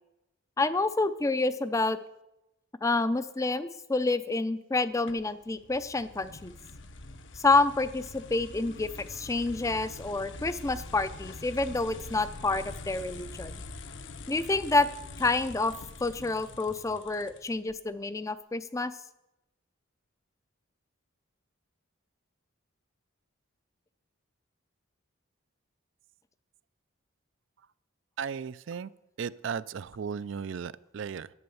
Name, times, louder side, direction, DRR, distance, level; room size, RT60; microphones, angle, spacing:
voice 1, 0.6-2.0 2.8-6.5 7.3-13.6 14.3-14.9 15.2-15.7 16.0-18.9, left 3 dB, 15° left, 13 dB, 0.4 m, -28 dB
sound 1, 5.1-17.8, left 3 dB, 60° left, 0.8 m, -44 dB
voice 2, 28.2-28.9 29.2-31.3, right 6 dB, 60° right, 17 dB, 0.4 m, -35 dB
11.0 x 8.7 x 7.0 m, 0.90 s
head